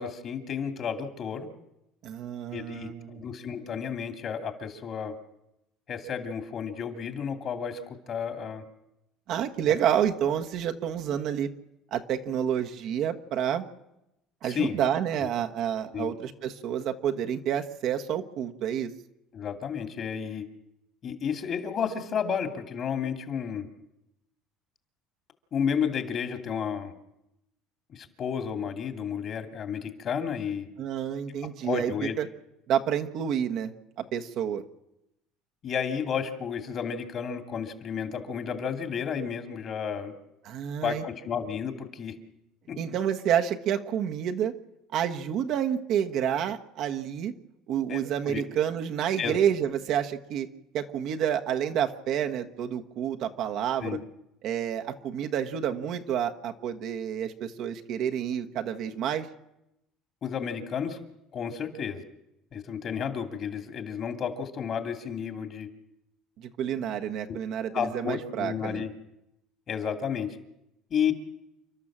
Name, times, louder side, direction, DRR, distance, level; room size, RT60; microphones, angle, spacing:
voice 1, 0.0-1.5 2.5-5.1 5.9-8.6 14.4-14.8 15.2-15.3 15.9-16.1 19.3-20.5 21.0-23.7 25.5-26.9 27.9-30.7 31.6-32.1 35.6-40.1 40.8-42.2 42.7-42.8 47.9-48.4 49.2-49.4 53.8-54.0 60.2-61.0 61.3-62.0 62.5-65.7 67.3-67.4 67.7-68.9 69.7-70.4 70.9-71.1, left 7 dB, 45° left, 7 dB, 2.6 m, -32 dB
voice 2, 2.0-3.2 9.3-11.5 11.9-13.6 14.4-18.9 30.8-31.9 32.2-32.3 32.7-33.7 34.1-34.6 40.4-41.0 42.8-44.5 44.9-47.3 47.7-50.5 50.7-54.0 54.4-59.3 66.4-68.8, right 9 dB, 60° right, 5 dB, 1.4 m, -29 dB
29.0 x 12.0 x 7.5 m, 0.88 s
supercardioid pair, 110°, 0 cm